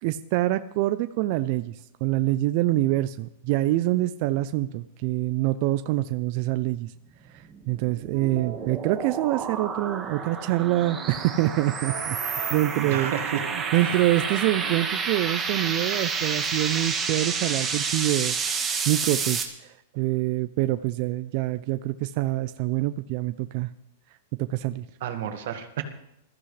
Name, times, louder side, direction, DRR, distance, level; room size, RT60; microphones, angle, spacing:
voice 1, 0.0-6.9 7.3-13.1 13.5-18.4 18.9-23.7 24.4-24.8, right 16 dB, 45° right, 11 dB, 0.5 m, -26 dB
sound 1, 7.4-19.4, right 5 dB, 15° right, 1.6 m, -30 dB
sound 2, 8.1-14.8, right 9 dB, 80° right, 2.3 m, -42 dB
voice 2, 12.3-13.5 13.7-14.0 25.0-25.8, right 10 dB, 65° right, 6 dB, 1.8 m, -32 dB
21.0 x 14.5 x 3.3 m, 0.81 s
supercardioid pair, 155°, 0 cm